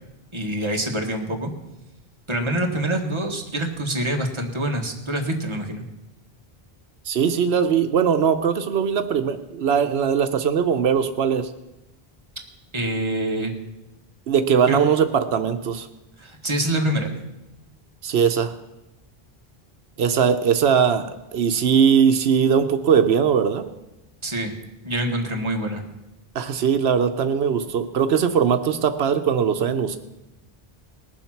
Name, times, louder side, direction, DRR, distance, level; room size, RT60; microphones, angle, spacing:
voice 1, 0.3-1.5 2.3-5.8 12.7-13.5 14.7-14.8 16.2-17.1 24.2-24.5 24.8-25.8, right 1 dB, 30° right, 2 dB, 1.7 m, -25 dB
voice 2, 7.1-11.5 14.3-15.9 18.0-18.5 20.0-23.6 26.3-30.0, right 7 dB, 90° right, 8 dB, 1.0 m, -20 dB
19.5 x 7.3 x 5.9 m, 0.96 s
omnidirectional pair, 1.0 m